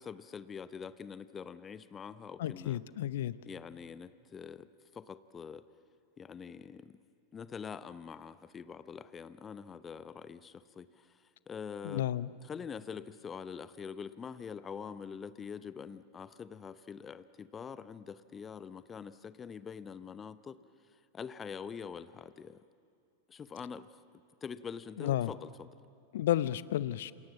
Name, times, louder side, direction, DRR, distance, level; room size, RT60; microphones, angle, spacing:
voice 1, 0.0-2.8 3.5-4.7 4.9-5.6 6.2-7.0 7.3-11.1 11.5-12.0 12.5-20.6 21.1-22.6 23.3-23.9 24.4-25.7, left 6 dB, 20° left, 15 dB, 0.8 m, -44 dB
voice 2, 2.4-3.3 11.8-12.3 25.0-25.3 26.1-27.1, left 12 dB, 55° left, 18 dB, 0.7 m, -32 dB
28.0 x 27.0 x 7.4 m, 2.4 s
figure-of-eight pair, 90°, 0 cm